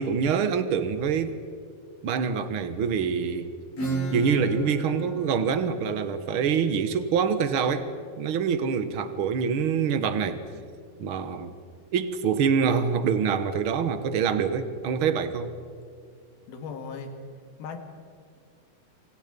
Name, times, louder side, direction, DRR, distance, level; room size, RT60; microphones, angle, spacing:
voice 1, 0.0-1.3 2.0-3.5 4.1-7.9 8.2-10.4 11.0-11.5 11.9-15.5, right 6 dB, 55° right, 10 dB, 1.6 m, -25 dB
Acoustic guitar / Strum, 3.8-9.1, right 1 dB, 45° left, 7.9 m, -35 dB
voice 2, 16.5-17.1 17.6-17.8, left 5 dB, 90° left, 6 dB, 4.1 m, -37 dB
29.0 x 25.5 x 5.4 m, 2.2 s
omnidirectional pair, 4.2 m